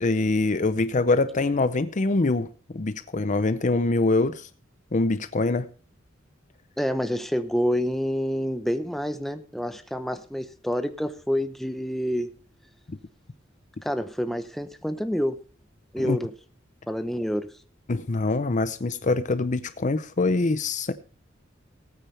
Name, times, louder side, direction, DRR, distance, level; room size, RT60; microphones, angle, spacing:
voice 1, 0.0-2.5 2.7-4.5 4.9-5.7 12.9-13.0 16.0-16.2 17.9-20.9, left 3 dB, 40° left, 0.6 m, -24 dB
voice 2, 6.8-12.3 13.8-15.4 15.9-16.3 16.9-17.5, equal, ahead, 0.8 m, -28 dB
19.0 x 9.1 x 3.4 m
head